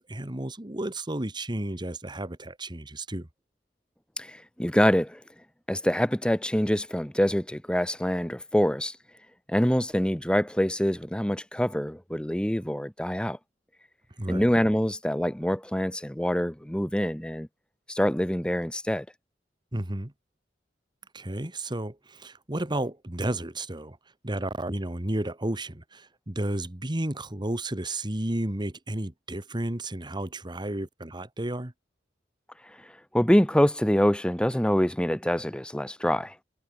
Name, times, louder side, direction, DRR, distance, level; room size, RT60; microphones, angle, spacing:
voice 1, 0.0-3.3 14.2-14.5 19.7-20.1 21.1-24.0 24.2-31.7, right 1 dB, 25° right, 1.6 m, -32 dB
voice 2, 4.2-5.2 5.7-9.0 9.5-13.4 14.3-17.5 17.9-19.1 32.6-36.4, equal, 5° left, 1.0 m, -25 dB
head